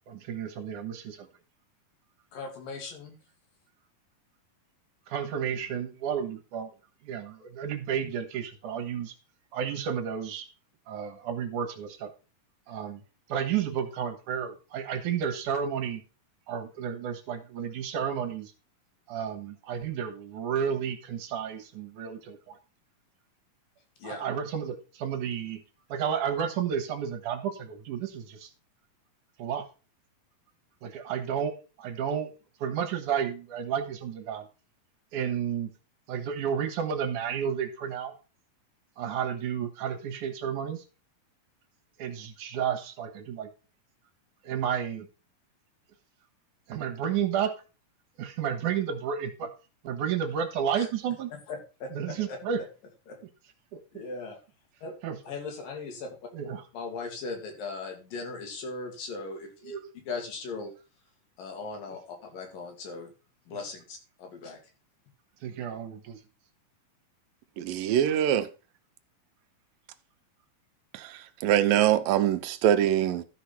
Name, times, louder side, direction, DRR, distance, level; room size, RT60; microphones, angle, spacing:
voice 1, 0.1-1.3 5.1-6.7 7.0-9.1 9.5-10.5 10.9-12.1 12.7-13.0 13.3-16.0 16.5-18.5 19.1-22.6 24.0-25.6 25.9-28.5 29.4-29.7 30.8-31.5 31.8-32.3 32.6-34.5 35.1-35.7 36.1-38.1 39.0-40.8 42.0-43.5 44.4-45.1 46.7-47.5 48.2-49.5 49.8-51.3 51.9-52.6 53.7-53.8 55.0-55.2 56.3-56.6 59.6-59.9 65.4-66.2, right 8 dB, 70° right, 2.7 m, -31 dB
voice 2, 2.3-3.2 24.0-24.3 50.8-50.9 51.5-51.6 52.1-52.4 53.1-53.2 53.9-54.4 54.8-54.9 55.2-56.2 56.7-59.8 60.1-60.7 61.4-63.1 63.5-64.6, left 4 dB, 80° left, 4.2 m, -38 dB
voice 3, 67.6-68.5 70.9-73.2, right 11 dB, 85° right, 2.5 m, -24 dB
12.5 x 4.8 x 6.0 m
omnidirectional pair, 3.9 m